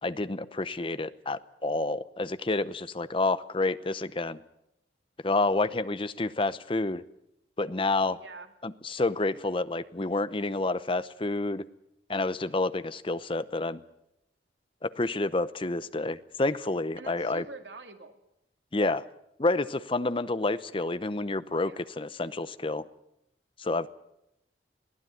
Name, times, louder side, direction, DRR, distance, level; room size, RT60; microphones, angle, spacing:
voice 1, 0.0-4.4 5.2-7.0 7.6-8.2 8.6-11.6 12.1-13.8 14.8-17.4 18.7-19.0 19.4-22.9 23.6-23.9, left 2 dB, 30° left, 14 dB, 0.8 m, -29 dB
voice 2, 8.1-8.5 16.9-18.2 21.6-21.9, right 3 dB, 85° right, 5 dB, 2.5 m, -45 dB
22.0 x 15.5 x 9.3 m, 0.82 s
head